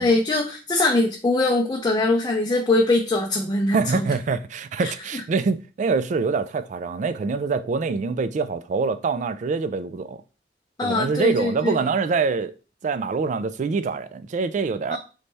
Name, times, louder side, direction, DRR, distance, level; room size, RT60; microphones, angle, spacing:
voice 1, 0.0-4.1 5.1-5.2 10.8-11.7 14.9-15.0, left 2 dB, 25° left, 0.6 m, -22 dB
voice 2, 3.7-10.2 10.8-12.5 12.8-15.0, right 4 dB, 45° right, 0.3 m, -25 dB
4.0 x 3.2 x 3.3 m
head